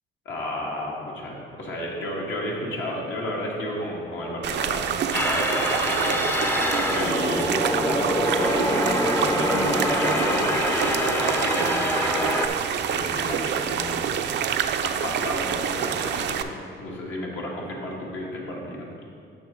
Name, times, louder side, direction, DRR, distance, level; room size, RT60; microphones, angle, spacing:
voice 1, 0.2-6.2 6.5-12.4 12.8-14.1 14.8-16.5 16.8-18.9, left 1 dB, 75° left, -3 dB, 1.6 m, -33 dB
sound 1, 4.4-16.4, right 8 dB, 60° right, 0.5 m, -27 dB
sound 2, 5.1-12.5, left 1 dB, 10° left, 0.5 m, -25 dB
8.9 x 5.8 x 3.7 m, 2.4 s
cardioid pair, 90°, 20 cm